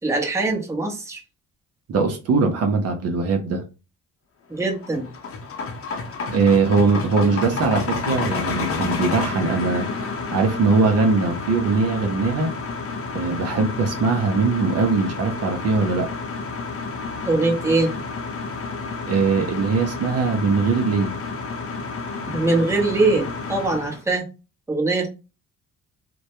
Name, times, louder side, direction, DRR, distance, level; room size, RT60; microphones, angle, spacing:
voice 1, 0.0-1.2 4.5-5.1 17.2-17.9 22.3-24.3 24.7-25.1, right 3 dB, 10° right, 0.8 m, -22 dB
voice 2, 1.9-3.6 6.3-9.9 10.3-12.5 13.1-16.1 19.1-21.1, right 4 dB, 55° right, 0.6 m, -21 dB
sound 1, 4.6-24.0, left 4 dB, 50° left, 0.7 m, -30 dB
2.2 x 2.1 x 2.8 m
cardioid pair, 90°, 30 cm